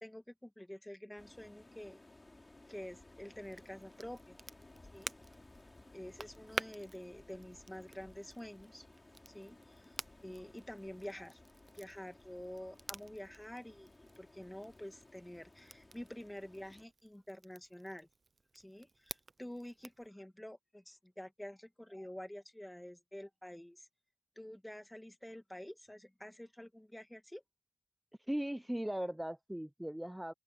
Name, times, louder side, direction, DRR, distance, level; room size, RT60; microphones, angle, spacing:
voice 1, 0.0-2.0 2.7-4.4 4.9-5.1 5.9-8.9 9.3-10.0 10.2-11.4 11.7-18.1 18.5-23.9 24.4-27.4, left 1 dB, 15° left, 2.1 m, -48 dB
sound 1, 1.2-16.8, left 2 dB, 45° left, 3.0 m, -59 dB
Crackle, 3.4-20.1, right 3 dB, 90° right, 0.5 m, -51 dB
voice 2, 28.3-30.3, equal, 10° right, 0.5 m, -38 dB
open air
wide cardioid pair, 55°, 0 cm